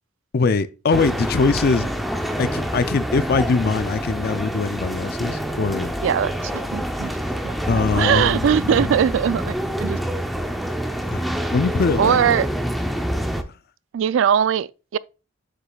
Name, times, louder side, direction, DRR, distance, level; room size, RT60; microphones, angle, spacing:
voice 1, 0.3-1.9 2.4-5.9 7.6-9.0 11.1-12.4, left 4 dB, 55° left, 0.4 m, -22 dB
sound 1, 0.9-13.4, equal, ahead, 0.6 m, -26 dB
voice 2, 6.0-7.1 7.4-7.6 7.9-10.0 12.0-12.5 13.9-15.0, right 8 dB, 85° right, 0.3 m, -20 dB
7.4 x 6.7 x 2.3 m
head